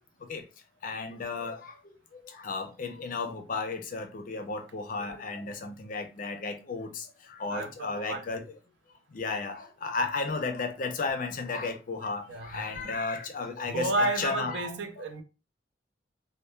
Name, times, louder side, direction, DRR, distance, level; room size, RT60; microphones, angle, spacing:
voice 1, 0.8-1.7 2.1-8.5 9.1-15.1, left 4 dB, 50° left, 0.4 m, -34 dB
voice 2, 7.5-8.2 12.0-12.9 13.7-15.2, right 2 dB, 85° right, 0.5 m, -32 dB
2.1 x 2.1 x 3.1 m
head